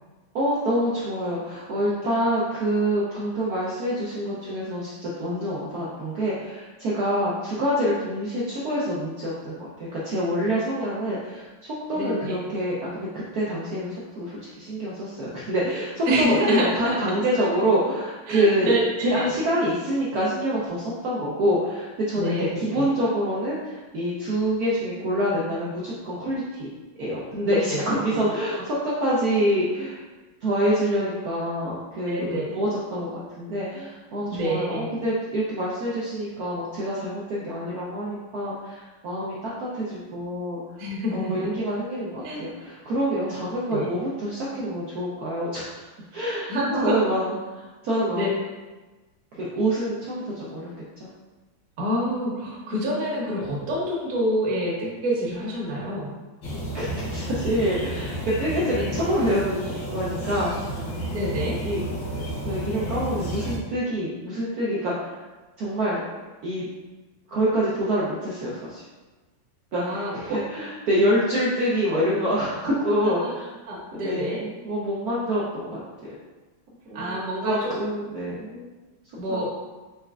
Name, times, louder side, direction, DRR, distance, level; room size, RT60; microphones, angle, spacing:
voice 1, 0.3-26.7 27.0-30.0 30.4-40.6 41.1-45.8 46.1-48.3 49.4-50.7 51.0-51.1 56.7-60.8 61.6-61.8 62.4-65.1 65.6-66.0 66.4-66.7 67.3-68.8 69.7-73.5 74.0-75.8 76.9-78.7 79.3-79.5, equal, 80° right, -7 dB, 0.8 m, -26 dB
voice 2, 11.9-12.4 16.1-16.9 18.3-18.8 19.1-19.3 22.1-22.9 27.5-27.8 32.1-32.4 34.3-34.9 40.8-41.5 42.2-42.5 43.7-43.9 46.5-47.0 48.1-48.3 51.8-56.1 61.1-61.6 69.8-70.4 72.6-73.3 73.7-74.4 76.9-77.7 79.2-79.5, equal, 50° right, -5 dB, 1.1 m, -27 dB
sound 1, 56.4-63.6, right 1 dB, 60° left, 1.2 m, -31 dB
4.1 x 3.2 x 2.4 m, 1.2 s
omnidirectional pair, 2.3 m